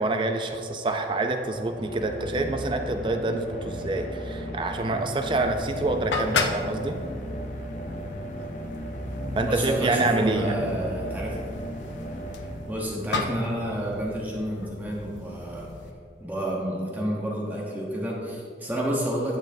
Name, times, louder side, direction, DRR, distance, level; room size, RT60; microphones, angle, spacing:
voice 1, 0.0-7.0 9.3-10.6, right 2 dB, 25° right, 5 dB, 0.4 m, -27 dB
sound 1, 1.4-13.3, equal, 45° left, 0.7 m, -36 dB
sound 2, 5.2-15.9, left 3 dB, 90° left, 0.6 m, -35 dB
voice 2, 9.5-11.4 12.7-15.7 16.2-19.4, right 1 dB, 10° right, -4 dB, 0.9 m, -29 dB
9.0 x 7.8 x 2.6 m, 2.3 s
head